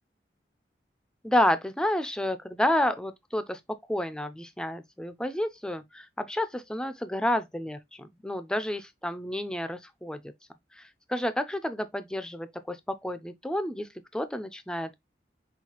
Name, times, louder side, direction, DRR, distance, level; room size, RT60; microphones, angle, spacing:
voice 1, 1.2-3.6 3.9-10.2 10.8-12.8 13.0-14.9, left 1 dB, 5° left, 0.4 m, -30 dB
5.6 x 2.3 x 2.9 m
head